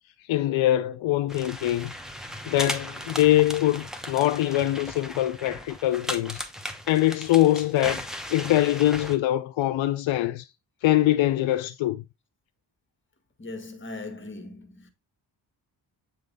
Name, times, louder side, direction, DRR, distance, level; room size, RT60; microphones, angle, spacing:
voice 1, 0.3-1.9 2.5-6.4 6.9-10.5 10.8-12.0, left 14 dB, 80° left, 0.6 m, -23 dB
sound 1, 1.3-9.2, equal, ahead, 1.0 m, -37 dB
voice 2, 13.4-14.9, left 2 dB, 25° left, 1.6 m, -39 dB
8.3 x 3.2 x 4.0 m
cardioid pair, 75°, 46 cm